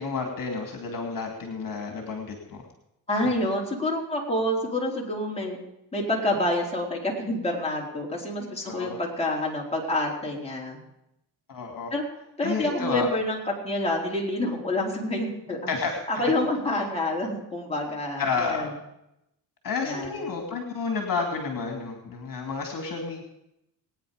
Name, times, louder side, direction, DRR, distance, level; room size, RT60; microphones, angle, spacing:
voice 1, 0.0-2.6 8.6-9.0 11.5-11.9 12.4-13.1 15.7-16.2 18.2-18.7 19.6-23.2, left 4 dB, 50° left, 3 dB, 2.8 m, -30 dB
voice 2, 3.1-5.6 5.9-10.8 11.9-12.0 12.4-13.4 13.6-15.7 16.1-18.7 19.8-20.2, left 1 dB, 15° left, -3 dB, 4.3 m, -28 dB
21.0 x 9.9 x 5.1 m, 0.84 s
cardioid pair, 95°, 42 cm